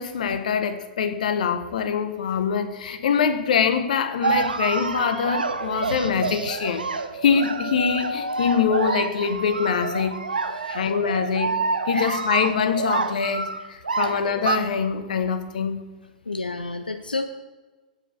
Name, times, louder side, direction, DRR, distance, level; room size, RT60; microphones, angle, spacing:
voice 1, 0.0-6.9 7.1-10.2 10.7-15.9, left 7 dB, 60° left, 0.7 m, -24 dB
sound 1, 4.2-14.6, right 4 dB, 80° right, 0.5 m, -27 dB
voice 2, 10.5-10.9 11.9-12.2 16.3-17.3, left 3 dB, 85° left, 0.4 m, -31 dB
7.8 x 4.7 x 5.8 m
figure-of-eight pair, 105°, 5 cm